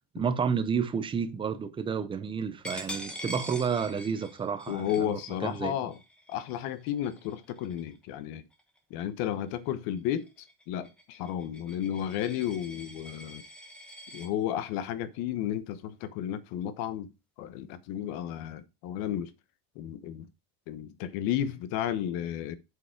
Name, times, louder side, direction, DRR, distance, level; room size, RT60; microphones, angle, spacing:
voice 1, 0.1-5.7, right 6 dB, 15° right, 0.5 m, -31 dB
Coin (dropping), 2.6-8.0 8.5-8.8 9.2-14.3, equal, 5° left, 1.1 m, -45 dB
voice 2, 4.7-6.0 6.3-8.4 8.9-13.4 14.1-17.1 17.4-19.3 19.7-20.3 20.7-22.6, left 10 dB, 60° left, 1.1 m, -33 dB
8.1 x 5.1 x 4.5 m
cardioid pair, 180°, 42 cm